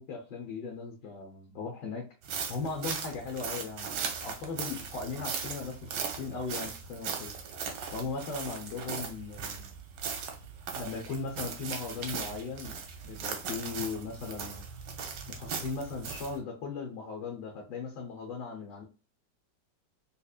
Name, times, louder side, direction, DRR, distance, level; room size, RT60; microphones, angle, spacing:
voice 1, 0.0-2.0 2.5-7.3 7.9-9.7 10.8-12.8 13.0-14.6 15.3-18.8, left 4 dB, 80° left, 1 dB, 1.4 m, -38 dB
sound 1, 2.2-16.4, right 6 dB, 80° right, 1.4 m, -38 dB
4.3 x 2.9 x 2.4 m, 0.32 s
omnidirectional pair, 1.9 m